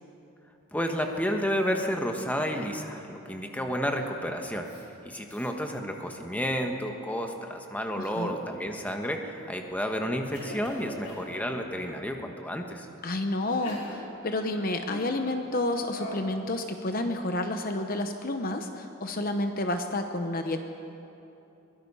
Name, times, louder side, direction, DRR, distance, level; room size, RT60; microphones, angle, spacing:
voice 1, 0.7-4.7 5.0-12.9, equal, 5° left, 3 dB, 1.3 m, -31 dB
Cough, 0.8-2.0 2.3-2.9 4.0-4.3 4.6-4.8 5.3-5.5 6.1-6.5 8.0-8.8 9.4-9.8 10.3-12.1 12.8-12.9 13.5-15.3 15.9-16.3, left 1 dB, 80° left, 5.0 m, -45 dB
voice 2, 13.0-20.6, left 2 dB, 40° left, 6 dB, 0.9 m, -30 dB
22.5 x 21.5 x 5.6 m, 3.0 s
head